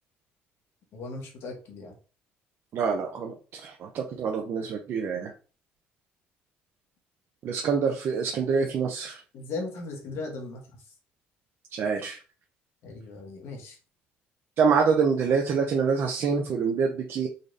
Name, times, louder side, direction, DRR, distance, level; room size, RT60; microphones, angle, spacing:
voice 1, 0.9-1.9 4.1-4.2 9.3-10.6 12.8-13.8, left 3 dB, 65° left, 1 dB, 1.4 m, -37 dB
voice 2, 2.7-5.3 7.4-9.2 11.7-12.2 14.6-17.3, right 5 dB, 55° right, 3 dB, 0.6 m, -26 dB
4.0 x 3.1 x 2.6 m, 0.36 s
cardioid pair, 100°, 5 cm